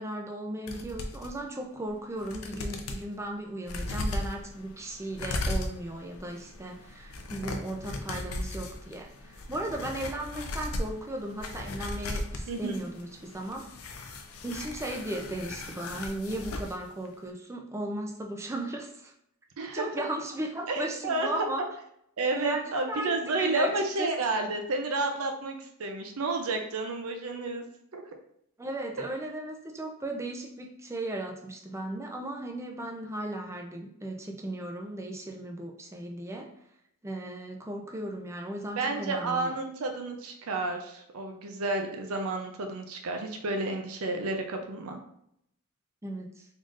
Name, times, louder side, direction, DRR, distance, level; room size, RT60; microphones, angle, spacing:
voice 1, 0.0-13.7 14.4-19.1 19.7-21.7 22.3-24.1 28.6-36.5 37.0-39.5 46.0-46.5, right 1 dB, 15° right, 2 dB, 0.5 m, -36 dB
sound 1, 0.7-1.3 1.8-1.9 2.2-3.0 3.6-16.8 17.1-17.2, left 2 dB, 90° left, 0.5 m, -37 dB
voice 2, 12.5-12.8 19.6-19.9 20.7-21.5 22.2-27.6 27.9-28.0 38.8-45.0, right 2 dB, 85° right, 4 dB, 0.6 m, -31 dB
3.8 x 3.6 x 2.5 m, 0.73 s
head